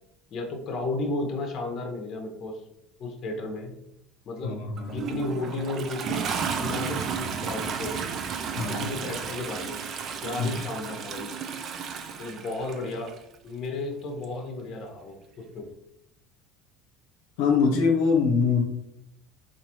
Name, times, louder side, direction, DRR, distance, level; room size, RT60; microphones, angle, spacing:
voice 1, 0.3-2.6 3.0-3.7 4.2-4.6 4.9-8.1 8.7-9.8 10.2-11.3 12.2-13.2 13.4-15.7, left 2 dB, 45° left, 3 dB, 0.8 m, -33 dB
voice 2, 4.4-5.0 8.6-8.8 10.4-10.5 17.4-18.6, left 5 dB, 80° left, 1 dB, 0.7 m, -23 dB
Toilet flush, 4.8-13.2 14.2-14.3, right 6 dB, 45° right, 0.4 m, -33 dB
3.9 x 2.5 x 2.9 m, 0.79 s
supercardioid pair, 100°, 0 cm